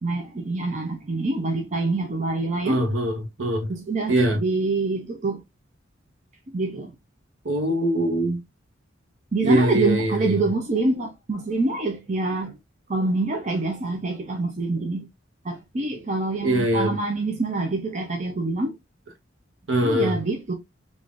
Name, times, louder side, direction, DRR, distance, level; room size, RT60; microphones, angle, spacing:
voice 1, 0.0-2.8 3.7-5.4 6.5-6.9 9.3-12.6 12.9-15.1 15.4-18.8 19.8-20.5, right 3 dB, 35° right, 0.5 m, -26 dB
voice 2, 2.6-3.7 4.1-4.4 7.4-8.4 9.4-10.4 16.4-17.0 19.7-20.2, right 1 dB, 65° right, 0.9 m, -22 dB
3.6 x 2.5 x 2.4 m
head